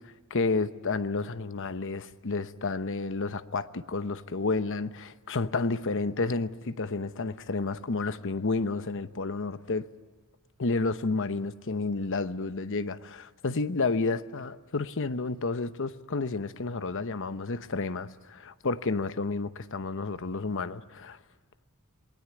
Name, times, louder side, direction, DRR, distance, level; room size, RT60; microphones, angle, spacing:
voice 1, 0.3-9.9 10.6-21.2, left 3 dB, 60° left, 0.9 m, -31 dB
28.0 x 20.5 x 9.5 m
head